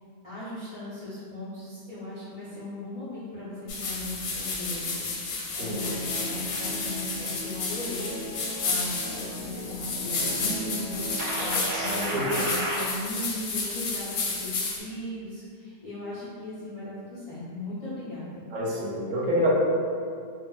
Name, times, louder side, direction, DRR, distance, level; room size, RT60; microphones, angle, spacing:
voice 1, 0.2-8.1 8.6-18.5, left 1 dB, 50° left, -12 dB, 0.4 m, -37 dB
sound 1, 3.7-14.8, left 3 dB, 80° left, 1.1 m, -32 dB
voice 2, 5.5-5.8 11.8-12.4 18.5-19.5, equal, 65° right, -5 dB, 0.9 m, -28 dB
Guitar, 5.7-12.3, equal, 30° right, 0.8 m, -40 dB
sound 2, 11.2-12.8, right 1 dB, 85° right, 0.4 m, -31 dB
2.5 x 2.0 x 3.7 m, 2.2 s
omnidirectional pair, 1.6 m